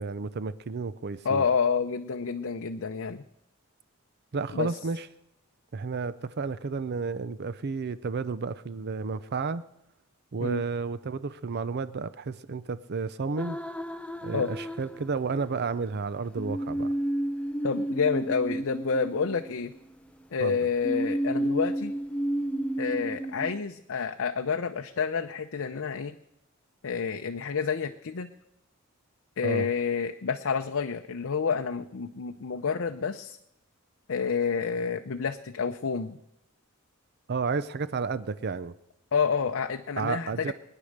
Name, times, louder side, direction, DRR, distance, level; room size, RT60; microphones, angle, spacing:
voice 1, 0.0-1.5 4.3-5.1 5.7-9.6 10.3-13.6 14.2-16.9 20.4-20.6 29.4-29.7 37.3-38.7 40.0-40.5, right 4 dB, 50° right, 15 dB, 0.5 m, -32 dB
voice 2, 1.2-3.2 4.5-4.7 10.4-10.6 14.3-14.5 17.6-19.7 20.3-21.9 22.8-26.1 26.8-28.3 29.4-33.4 34.1-36.2 39.1-40.5, left 5 dB, 65° left, 6 dB, 0.6 m, -29 dB
sound 1, 13.4-15.5 16.3-20.0 20.8-23.6, right 1 dB, 5° left, 0.5 m, -31 dB
21.0 x 9.9 x 6.6 m, 0.84 s
head